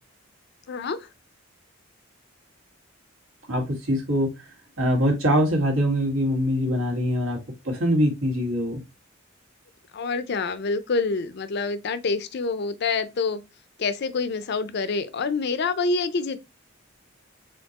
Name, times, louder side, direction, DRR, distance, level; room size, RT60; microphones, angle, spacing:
voice 1, 0.7-1.1 9.9-13.4 13.8-16.4, left 4 dB, 55° left, 0.5 m, -27 dB
voice 2, 3.5-4.3 4.8-7.4 7.6-8.8, equal, 85° right, 1.6 m, -23 dB
4.3 x 3.8 x 2.8 m
head